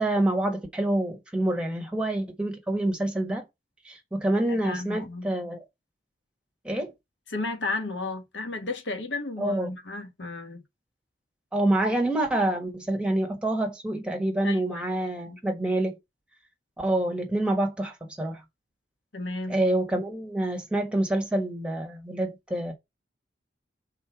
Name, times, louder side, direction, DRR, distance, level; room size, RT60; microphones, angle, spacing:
voice 1, 0.0-3.4 3.8-5.6 6.6-6.9 9.4-9.7 11.5-16.0 16.8-18.4 19.5-22.7, right 1 dB, 5° right, 1.4 m, -27 dB
voice 2, 4.5-5.3 7.3-10.6 14.4-14.8 15.2-15.4 19.1-19.6, left 3 dB, 90° left, 1.4 m, -33 dB
5.5 x 3.9 x 5.9 m
head